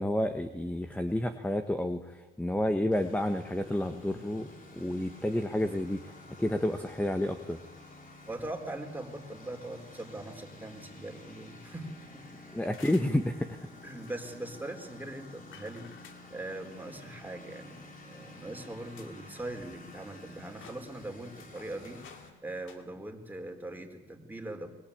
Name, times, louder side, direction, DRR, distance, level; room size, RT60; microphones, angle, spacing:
voice 1, 0.0-4.5 4.7-7.6 12.5-13.6, left 1 dB, 5° left, 8 dB, 1.4 m, -30 dB
Engine, 2.9-22.3, left 2 dB, 45° left, 5.6 m, -51 dB
voice 2, 8.3-12.2 13.8-15.9 16.3-24.7, right 1 dB, 10° right, 3 dB, 4.2 m, -41 dB
sound 1, 12.6-13.2 14.0-14.3 15.5-16.2 17.5-18.0 18.5-18.6 18.9-19.2 19.5-20.2 20.5-22.3 22.6-22.8, left 7 dB, 80° left, 2.5 m, -54 dB
24.5 x 20.0 x 8.8 m, 1.1 s
cardioid pair, 90°, 20 cm